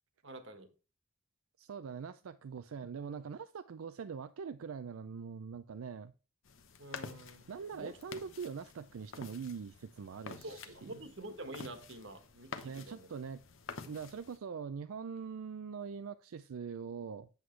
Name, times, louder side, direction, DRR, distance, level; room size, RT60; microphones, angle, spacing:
voice 1, 0.2-0.7 6.8-7.9 10.4-13.1, right 1 dB, 60° right, 1.4 m, -47 dB
voice 2, 1.6-6.1 7.5-11.0 12.6-13.4 13.9-17.3, right 6 dB, 85° right, 0.4 m, -43 dB
sound 1, 6.4-14.4, left 5 dB, 70° left, 0.8 m, -49 dB
8.0 x 7.8 x 3.2 m
head